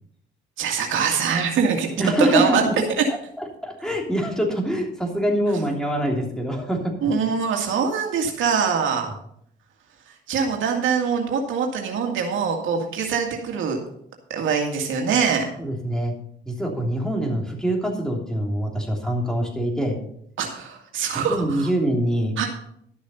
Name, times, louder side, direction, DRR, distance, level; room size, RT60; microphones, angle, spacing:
voice 1, 0.6-1.9 2.3-2.6 3.0-3.1 7.0-9.1 10.3-13.8 14.3-15.5 20.4-21.7 22.4-22.5, right 6 dB, 80° right, 2 dB, 2.0 m, -23 dB
voice 2, 2.0-2.6 3.4-6.9 15.6-16.1 16.5-20.0 21.3-22.3, right 1 dB, 5° left, 0 dB, 3.1 m, -24 dB
12.5 x 6.4 x 5.5 m, 0.69 s
cardioid pair, 90°, 20 cm